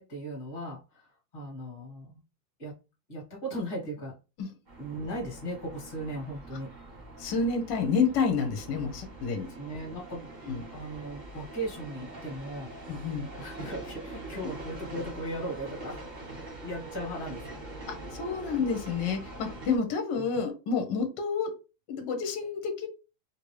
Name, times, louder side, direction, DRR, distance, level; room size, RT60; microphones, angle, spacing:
voice 1, 0.0-2.2 2.6-2.8 3.1-4.1 4.8-6.7 9.3-12.8 13.4-16.1 16.6-17.7 20.2-20.3, right 1 dB, 30° left, -2 dB, 1.2 m, -38 dB
sound 1, 4.7-19.8, right 2 dB, 35° right, 0.7 m, -44 dB
voice 2, 7.2-9.5 10.5-10.6 12.9-13.3 17.9-21.5 21.9-22.9, left 5 dB, 70° left, 5 dB, 1.3 m, -29 dB
3.2 x 2.6 x 3.1 m, 0.30 s
omnidirectional pair, 2.2 m